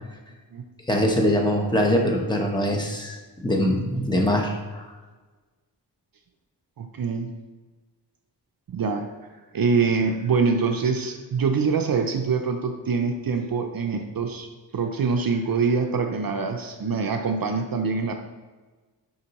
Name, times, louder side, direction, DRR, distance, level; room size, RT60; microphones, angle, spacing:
voice 1, 0.9-4.8, equal, 10° left, 1 dB, 0.9 m, -23 dB
voice 2, 6.8-7.3 8.7-9.1 9.5-14.5 14.7-18.1, right 5 dB, 55° right, 5 dB, 0.5 m, -24 dB
6.5 x 5.2 x 2.9 m, 1.3 s
wide cardioid pair, 100°, 43 cm